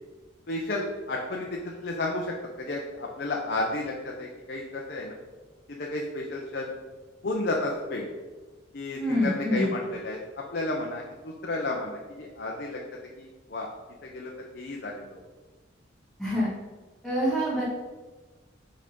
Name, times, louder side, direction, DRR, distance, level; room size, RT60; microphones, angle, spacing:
voice 1, 0.5-5.2 5.7-6.7 7.2-8.1 8.7-13.7 14.0-15.2, left 2 dB, 55° left, -1 dB, 0.8 m, -32 dB
voice 2, 9.0-9.7 16.2-16.5 17.0-17.6, equal, ahead, -9 dB, 1.5 m, -26 dB
5.4 x 5.1 x 5.3 m, 1.3 s
head